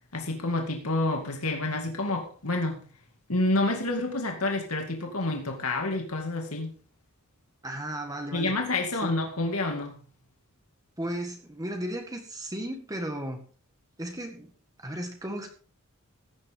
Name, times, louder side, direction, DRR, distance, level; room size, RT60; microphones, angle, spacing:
voice 1, 0.1-2.8 3.3-6.7 8.3-10.0, left 2 dB, 85° left, 3 dB, 2.3 m, -28 dB
voice 2, 7.6-8.6 9.0-9.1 11.0-13.4 14.0-14.5 14.8-15.5, right 1 dB, 15° right, 4 dB, 1.8 m, -35 dB
15.5 x 10.5 x 3.7 m, 0.39 s
head